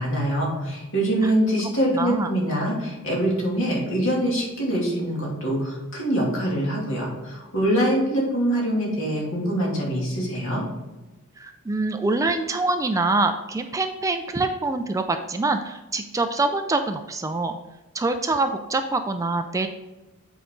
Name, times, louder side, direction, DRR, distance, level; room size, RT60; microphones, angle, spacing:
voice 1, 0.0-10.6, right 1 dB, 60° left, -3 dB, 2.6 m, -24 dB
voice 2, 1.9-2.3 11.4-17.6 17.9-19.7, right 3 dB, 15° right, 7 dB, 0.4 m, -25 dB
8.1 x 5.0 x 3.8 m, 1.1 s
head